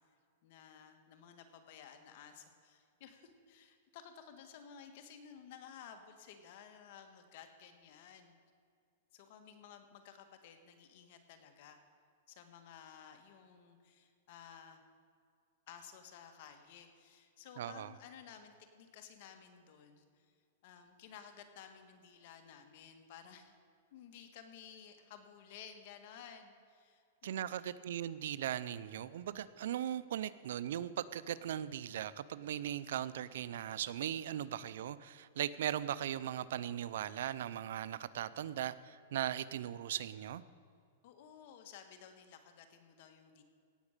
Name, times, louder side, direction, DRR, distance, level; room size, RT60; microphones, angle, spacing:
voice 1, 0.4-8.4 9.1-11.8 12.3-14.8 15.7-20.3 20.6-23.5 23.9-27.6 41.0-43.4, left 8 dB, 55° left, 6 dB, 1.7 m, -55 dB
voice 2, 17.6-17.9 27.2-40.4, right 11 dB, 70° right, 17 dB, 0.5 m, -39 dB
17.5 x 7.2 x 6.7 m, 2.3 s
hypercardioid pair, 145°, 0 cm